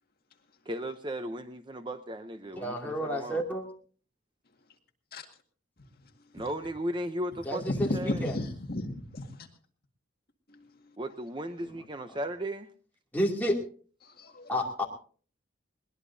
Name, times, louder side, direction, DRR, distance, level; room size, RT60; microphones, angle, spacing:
voice 1, 0.7-3.4 6.3-7.6 7.9-8.3 11.0-12.7, right 1 dB, 25° right, 9 dB, 0.6 m, -36 dB
voice 2, 2.6-3.7 7.5-8.4 11.6-11.7 13.1-13.6 14.5-14.9, equal, 10° left, -2 dB, 2.6 m, -30 dB
voice 3, 7.7-9.5 10.5-10.7 14.0-14.5, left 1 dB, 50° left, 4 dB, 1.9 m, -34 dB
21.0 x 19.5 x 2.7 m, 0.42 s
head